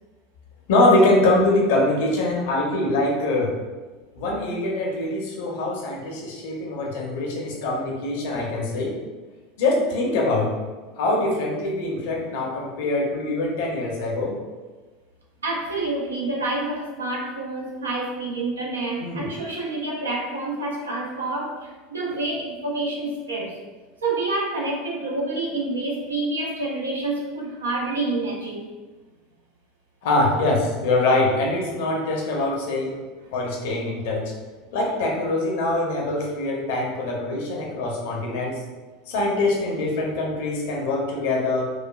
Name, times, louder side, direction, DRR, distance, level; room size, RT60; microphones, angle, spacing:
voice 1, 0.7-3.5 4.2-9.0 9.6-10.5 11.0-14.4 19.0-19.3 30.0-33.0 33.3-34.3 34.7-38.6 39.1-41.7, left 2 dB, 60° left, -1 dB, 0.8 m, -23 dB
voice 2, 15.4-23.6 24.0-28.7, right 2 dB, 75° right, -2 dB, 0.7 m, -28 dB
4.9 x 2.2 x 2.3 m, 1.3 s
figure-of-eight pair, 75°, 0 cm